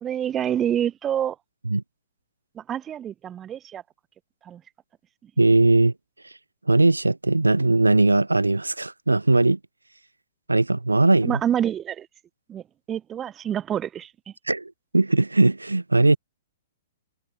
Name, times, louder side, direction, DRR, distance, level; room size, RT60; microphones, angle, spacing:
voice 1, 0.0-1.4 2.6-3.8 4.4-4.6 11.2-12.1 12.5-14.1, right 10 dB, 20° right, 0.4 m, -27 dB
voice 2, 5.4-5.9 6.7-9.6 10.5-11.4 14.5-16.2, right 2 dB, 80° right, 0.4 m, -19 dB
figure-of-eight pair, 115°, 0 cm